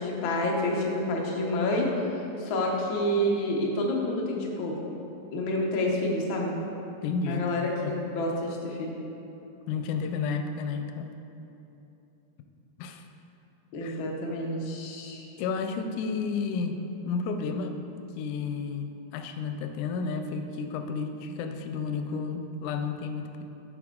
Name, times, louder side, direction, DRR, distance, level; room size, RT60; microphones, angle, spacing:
voice 1, 0.0-1.9 2.1-4.8 5.3-6.6 7.3-9.0 13.7-15.2, left 1 dB, 65° left, -1 dB, 1.2 m, -28 dB
voice 2, 7.0-7.9 9.7-11.1 12.8-13.1 13.8-14.0 15.4-16.8 17.1-17.8 18.2-23.4, left 5 dB, 85° left, 6 dB, 2.0 m, -32 dB
8.5 x 6.2 x 3.7 m, 3.0 s
omnidirectional pair, 3.4 m